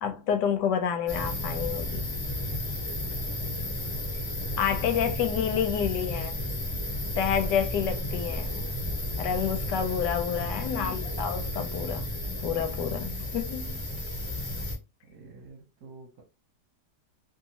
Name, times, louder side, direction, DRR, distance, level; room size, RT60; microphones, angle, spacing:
voice 1, 0.0-2.1 4.6-6.4 7.2-8.5 9.2-12.1 12.4-13.8, left 8 dB, 85° left, 1.2 m, -29 dB
sound 1, 1.1-14.8, left 1 dB, 25° left, 0.6 m, -33 dB
voice 2, 5.4-5.7 6.3-6.5 8.4-8.8 10.8-11.1 15.1-16.2, right 4 dB, 70° right, 1.4 m, -49 dB
2.9 x 2.8 x 2.8 m
omnidirectional pair, 1.8 m